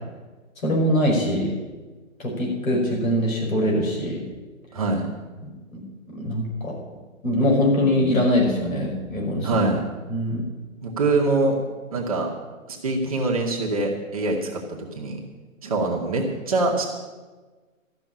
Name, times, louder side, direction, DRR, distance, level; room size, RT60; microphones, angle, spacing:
voice 1, 0.6-1.6 2.2-4.2 5.7-5.8 6.1-6.7 7.2-9.6 10.1-10.4, left 1 dB, 75° left, -1 dB, 5.5 m, -22 dB
voice 2, 4.7-5.1 9.4-9.8 10.8-11.6 11.9-12.3 12.7-15.2 15.6-16.8, right 2 dB, 25° right, -1 dB, 1.3 m, -24 dB
13.5 x 6.3 x 10.0 m, 1.3 s
hypercardioid pair, 175°, 41 cm